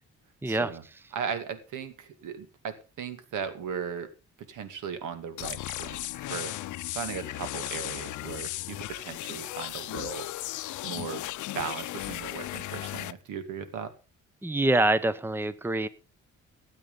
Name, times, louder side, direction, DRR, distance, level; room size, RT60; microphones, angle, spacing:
voice 1, 0.5-0.8 1.1-4.1 4.5-6.0 6.3-6.5 6.9-10.3 10.8-11.2 11.5-13.9, right 7 dB, 80° right, 11 dB, 2.3 m, -37 dB
sound 1, 5.4-13.1, left 16 dB, 80° left, 0.6 m, -36 dB
voice 2, 14.4-15.9, right 2 dB, 5° right, 17 dB, 0.8 m, -25 dB
16.5 x 8.2 x 5.4 m, 0.33 s
cardioid pair, 90°, 30 cm